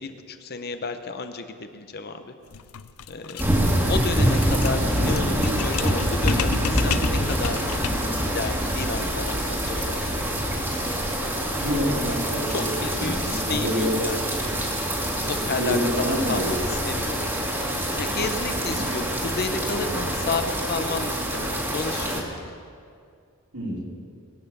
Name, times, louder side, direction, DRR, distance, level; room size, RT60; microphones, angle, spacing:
voice 1, 0.0-2.3 3.1-3.5 3.9-7.7 8.2-10.1 12.5-14.2 15.3-17.3 18.0-22.5, left 4 dB, 45° left, 8 dB, 0.9 m, -32 dB
sound 1, 2.5-8.2, left 7 dB, 80° left, 0.6 m, -33 dB
sound 2, 3.4-22.2, right 1 dB, 10° right, 1.9 m, -25 dB
voice 2, 11.6-14.0 15.5-16.6 18.7-19.0 23.5-23.8, equal, 80° right, -5 dB, 4.6 m, -27 dB
21.0 x 8.2 x 6.9 m, 2.2 s
head